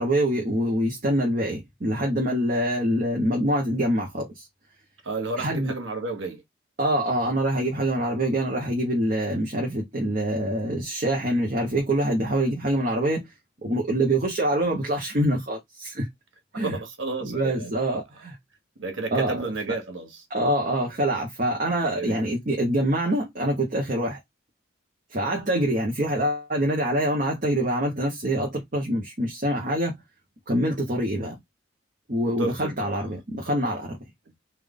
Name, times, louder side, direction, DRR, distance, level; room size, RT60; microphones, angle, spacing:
voice 1, 0.0-4.5 5.4-5.7 6.8-13.3 13.6-16.1 16.5-16.8 17.2-18.4 19.1-19.4 20.3-24.2 25.1-29.9 30.5-31.4 32.1-34.0, right 1 dB, 45° right, 1.0 m, -25 dB
voice 2, 5.0-6.4 16.5-17.9 18.8-20.3 20.6-20.8 21.8-22.2 32.3-33.2 33.4-33.5, right 3 dB, 85° right, 1.2 m, -32 dB
3.6 x 2.6 x 3.5 m
head